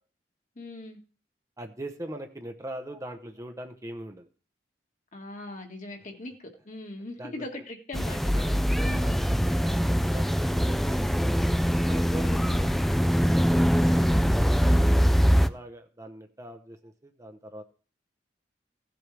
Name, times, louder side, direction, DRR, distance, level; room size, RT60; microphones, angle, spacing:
voice 1, 0.6-1.0 5.1-8.4 8.8-9.2 12.2-12.6 13.9-14.4 14.6-15.0, left 1 dB, 45° left, 2 dB, 1.8 m, -40 dB
voice 2, 1.6-4.3 7.2-7.4 8.3-11.4 11.9-13.9 15.0-17.6, right 1 dB, 20° right, 5 dB, 0.8 m, -42 dB
sound 1, 7.9-15.5, equal, ahead, 0.4 m, -23 dB
16.5 x 7.8 x 3.4 m, 0.39 s
head